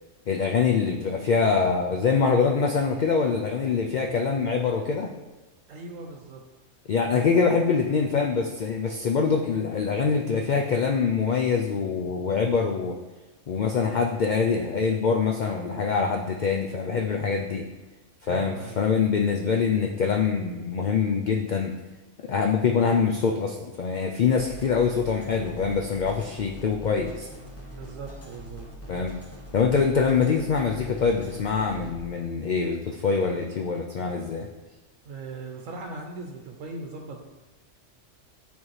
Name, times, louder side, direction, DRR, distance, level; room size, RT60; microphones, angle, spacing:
voice 1, 0.3-5.1 6.9-12.9 13.5-17.7 18.2-21.7 22.2-27.3 28.9-29.1 29.5-34.5, left 5 dB, 75° left, 2 dB, 0.4 m, -24 dB
voice 2, 5.7-6.4 18.3-18.9 27.7-28.7 35.0-37.2, right 3 dB, 85° right, 2 dB, 1.0 m, -39 dB
sound 1, 24.3-32.0, equal, 15° left, 0.8 m, -43 dB
8.6 x 3.6 x 3.1 m, 1.2 s
omnidirectional pair, 1.3 m